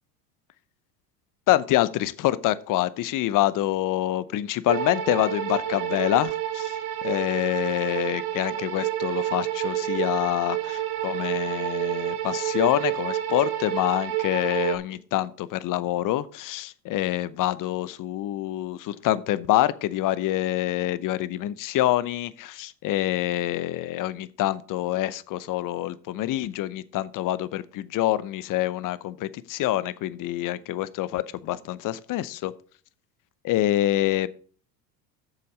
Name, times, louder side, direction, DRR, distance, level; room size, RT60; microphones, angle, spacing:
voice 1, 1.5-6.8 7.0-32.5 33.4-34.3, left 14 dB, 40° left, 17 dB, 0.7 m, -26 dB
sound 1, 4.7-14.8, right 12 dB, 65° right, 1.5 m, -29 dB
8.1 x 6.9 x 4.9 m, 0.44 s
hypercardioid pair, 85°, 49 cm